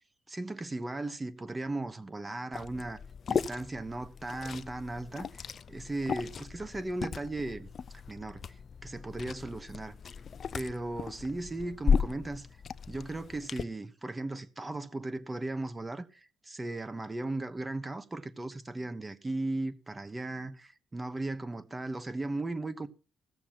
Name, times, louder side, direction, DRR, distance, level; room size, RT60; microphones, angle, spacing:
voice 1, 0.3-3.0 3.3-7.7 8.1-10.0 10.5-12.5 12.9-22.9, right 2 dB, 20° right, 1.1 m, -37 dB
Liquid, 2.5-13.6, left 6 dB, 50° left, 0.6 m, -35 dB
16.0 x 7.0 x 5.9 m
cardioid pair, 90°, 0 cm